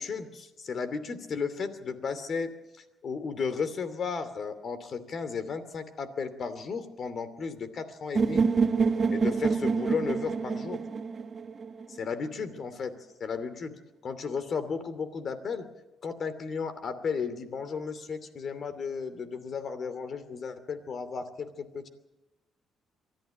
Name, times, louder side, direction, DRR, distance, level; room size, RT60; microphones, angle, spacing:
voice 1, 0.0-2.5 3.0-8.4 9.1-10.8 11.9-12.9 13.2-13.7 14.0-15.7 16.0-21.9, left 5 dB, 55° left, 11 dB, 2.7 m, -34 dB
sound 1, 8.2-12.1, right 5 dB, 40° right, 1.3 m, -27 dB
23.5 x 13.5 x 9.0 m, 1.0 s
cardioid pair, 90°, 0 cm